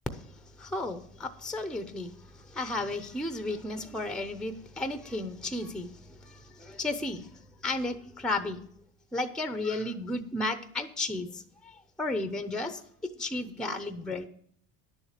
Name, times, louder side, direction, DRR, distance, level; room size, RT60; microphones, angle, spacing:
voice 1, 0.6-2.1 2.6-5.9 6.6-7.2 7.6-8.6 9.1-11.4 12.0-12.8 13.2-14.3, left 2 dB, ahead, 10 dB, 0.6 m, -33 dB
10.5 x 7.2 x 6.6 m, 0.64 s
cardioid pair, 130°, 33 cm